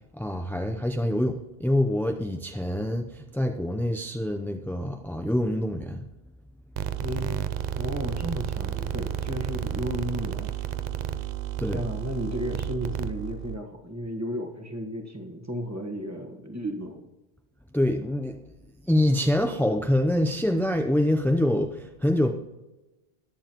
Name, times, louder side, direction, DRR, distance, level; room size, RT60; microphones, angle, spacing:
voice 1, 0.0-6.1 11.6-11.8 17.7-18.5 18.8-22.3, left 1 dB, 5° left, 4 dB, 0.4 m, -25 dB
sound 1, 6.8-13.6, right 10 dB, 55° right, 0.5 m, -31 dB
voice 2, 7.0-7.4 7.7-10.5 11.7-17.0, equal, 15° right, 2 dB, 1.3 m, -33 dB
21.5 x 7.2 x 3.0 m, 1.0 s
omnidirectional pair, 1.0 m